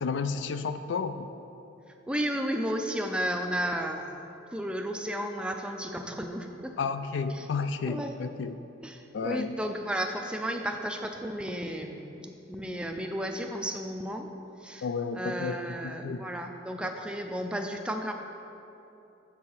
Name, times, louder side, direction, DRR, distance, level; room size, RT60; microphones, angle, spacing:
voice 1, 0.0-1.3 6.8-8.6 9.1-9.5 14.8-15.6 15.8-16.3 16.8-16.9, left 5 dB, 70° left, 11 dB, 0.4 m, -32 dB
voice 2, 2.1-6.8 7.3-7.5 7.9-8.2 8.8-14.3 14.6-14.9 15.1-18.1, equal, 5° right, 4 dB, 0.4 m, -33 dB
7.8 x 4.7 x 5.5 m, 2.9 s
head